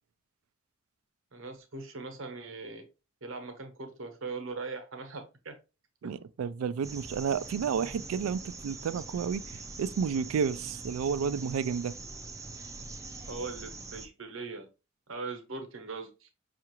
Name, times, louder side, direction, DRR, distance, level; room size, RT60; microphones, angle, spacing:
voice 1, 1.3-2.9 3.2-5.6 6.0-6.3 13.3-14.7 15.1-16.3, right 3 dB, 70° right, 0.9 m, -40 dB
voice 2, 6.0-11.9, right 6 dB, 90° right, 0.3 m, -31 dB
sound 1, 6.8-14.1, right 3 dB, 15° right, 0.4 m, -43 dB
5.6 x 2.5 x 2.9 m
head